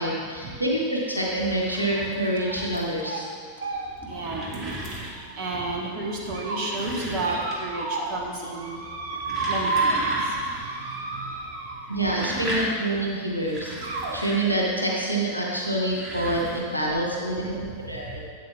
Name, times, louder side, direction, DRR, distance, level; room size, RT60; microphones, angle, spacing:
voice 1, 0.0-3.2 11.9-18.2, right 1 dB, 90° right, -3 dB, 1.4 m, -27 dB
sound 1, 1.1-3.0 3.7-5.4 6.4-7.8 8.1-8.6 9.0-10.7 11.0-11.1 11.9-14.9 15.7-16.6, right 1 dB, 25° right, 2.0 m, -36 dB
sound 2, 1.7-2.0 2.4-2.7 3.0-3.2 3.6-5.5 6.0-6.6 7.2-8.2 8.4-12.0 13.0-13.1 13.8-14.2, right 3 dB, 60° right, 1.2 m, -31 dB
voice 2, 4.0-4.8 5.0-5.1 5.4-8.8 9.5-10.2 10.8-11.3 17.7-18.1, right 2 dB, 45° right, -1 dB, 1.2 m, -32 dB
12.0 x 8.5 x 2.4 m, 2.1 s
figure-of-eight pair, 90°, 0 cm